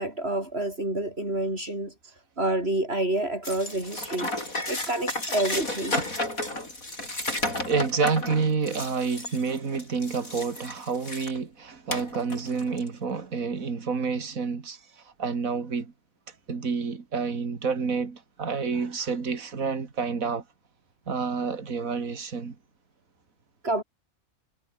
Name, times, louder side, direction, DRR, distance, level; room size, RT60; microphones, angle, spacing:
voice 1, 0.0-1.9 2.4-6.1 23.6-23.8, right 1 dB, 45° right, 7.6 m, -28 dB
sound 1, 3.4-11.4 11.9-12.9, left 1 dB, 75° left, 8.4 m, -33 dB
voice 2, 7.6-15.9 16.5-20.4 21.1-22.6, right 5 dB, 70° right, 2.8 m, -29 dB
omnidirectional pair, 1.5 m